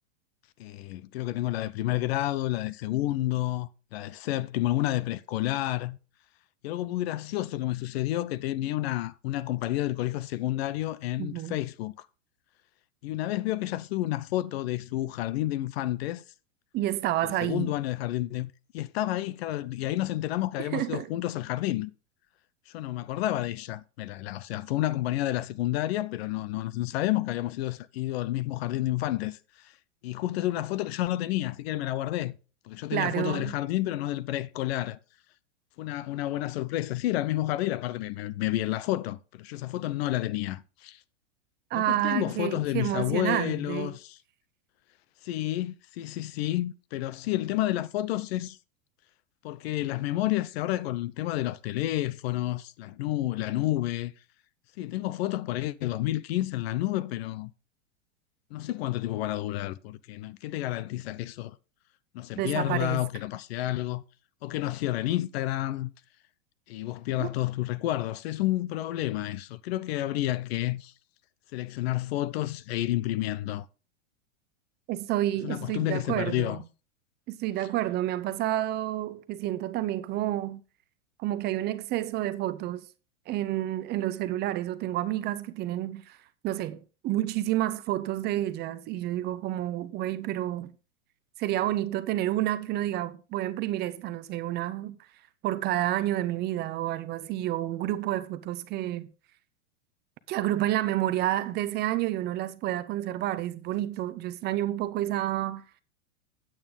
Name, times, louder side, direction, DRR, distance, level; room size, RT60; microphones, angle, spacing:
voice 1, 0.6-6.0 6.6-12.1 13.0-16.2 17.2-21.9 22.7-29.4 29.6-29.7 30.0-32.4 32.7-35.0 35.8-41.0 41.7-44.2 45.2-48.6 49.4-54.1 54.8-57.5 58.5-61.6 62.1-64.0 64.4-65.9 66.7-70.9 71.5-73.7 75.4-76.6, left 15 dB, 55° left, 0.7 m, -30 dB
voice 2, 11.2-11.6 16.7-17.7 20.6-21.1 32.9-33.5 41.7-44.0 62.4-63.0 67.2-67.3 74.9-76.6 77.3-80.6 81.2-82.9 83.3-86.2 86.4-90.7 91.4-95.0 95.4-99.1 100.3-105.6, right 14 dB, 25° right, 0.6 m, -29 dB
8.9 x 8.9 x 3.7 m
hypercardioid pair, 135°, 38 cm